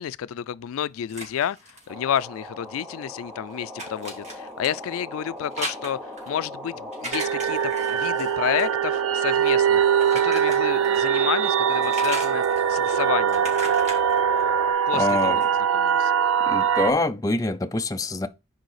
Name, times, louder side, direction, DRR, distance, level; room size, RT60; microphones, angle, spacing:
voice 1, 0.0-9.8 10.1-13.5 14.9-15.3 15.7-16.1, left 9 dB, 80° left, 0.3 m, -30 dB
sound 1, 0.7-2.8 3.1-11.2 11.5-15.5, right 1 dB, 35° right, 2.5 m, -39 dB
sound 2, 1.9-14.7, left 1 dB, 5° right, 0.9 m, -37 dB
sound 3, 7.1-16.9, right 8 dB, 85° right, 0.4 m, -22 dB
voice 2, 14.9-15.4 16.4-18.3, left 2 dB, 15° left, 0.4 m, -25 dB
6.5 x 4.7 x 4.8 m
head